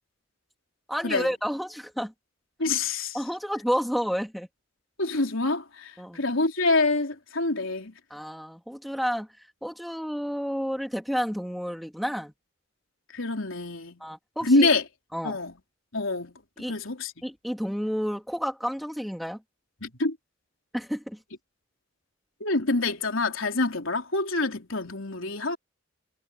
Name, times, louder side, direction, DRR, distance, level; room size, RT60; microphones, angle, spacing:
voice 1, 0.9-2.1 3.1-4.5 6.0-6.2 8.1-9.3 9.6-12.3 14.0-14.7 15.1-15.4 16.6-16.8 17.2-19.4 20.7-21.2, equal, ahead, 3.4 m, -30 dB
voice 2, 2.6-3.2 5.0-7.9 13.1-14.0 14.4-14.8 15.2-15.5 15.9-17.2 19.8-20.2 22.4-25.6, left 3 dB, 80° left, 3.7 m, -26 dB
head